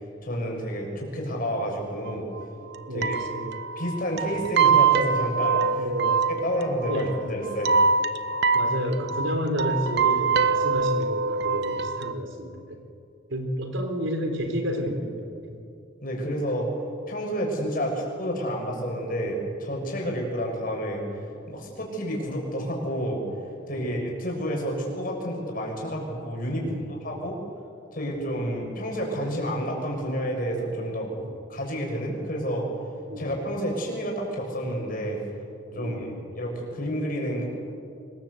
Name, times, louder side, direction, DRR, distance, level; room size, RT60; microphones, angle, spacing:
voice 1, 0.2-2.3 2.9-3.2 3.8-5.8 6.4-7.7 16.0-16.7 17.1-21.0 21.5-23.2 23.7-27.4 27.9-31.1 31.5-32.6 33.2-35.2 35.7-36.1 36.3-37.5, equal, 45° left, 0 dB, 6.7 m, -29 dB
sound 1, 2.1-2.2 2.4-2.5 2.7-2.8 3.0-12.1, right 5 dB, 60° right, 1.0 m, -24 dB
voice 2, 2.9-3.6 5.7-6.2 6.9-7.1 8.5-12.8 13.3-15.6 23.7-23.9 26.6-27.0 31.1-31.3 33.1-33.3 35.7-36.2, equal, 80° right, 5 dB, 4.1 m, -31 dB
25.0 x 21.5 x 8.1 m, 2.5 s
head